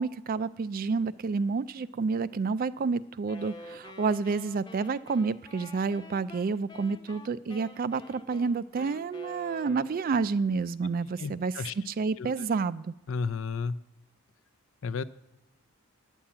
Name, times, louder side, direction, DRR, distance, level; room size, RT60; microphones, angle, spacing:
voice 1, 0.0-12.9, right 4 dB, 40° right, 16 dB, 0.3 m, -29 dB
Wind instrument woodwind instrument, 3.2-10.2, left 1 dB, 20° left, 0.9 m, -48 dB
voice 2, 11.2-11.7 12.2-12.3 13.1-13.8 14.8-15.0, left 5 dB, 60° left, 13 dB, 0.5 m, -32 dB
9.9 x 7.2 x 8.6 m, 0.94 s
head